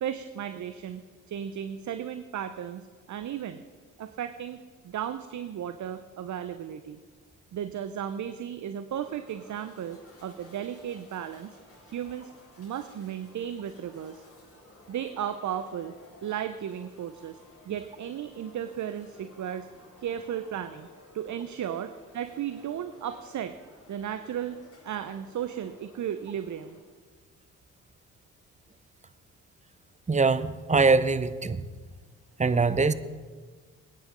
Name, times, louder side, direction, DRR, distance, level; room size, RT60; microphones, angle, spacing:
voice 1, 0.0-3.6 4.0-7.0 7.5-11.6 11.9-12.3 12.6-14.2 14.9-15.9 16.2-17.4 17.7-19.7 20.0-20.9 21.1-23.6 23.9-24.6 24.8-26.8, right 9 dB, 50° right, 11 dB, 0.8 m, -35 dB
sound 1, 9.0-26.8, left 2 dB, 35° left, 4.5 m, -55 dB
voice 2, 30.1-31.7 32.4-32.9, right 4 dB, 20° right, 14 dB, 0.8 m, -23 dB
21.0 x 9.8 x 3.8 m, 1.5 s
hypercardioid pair, 45°, 38 cm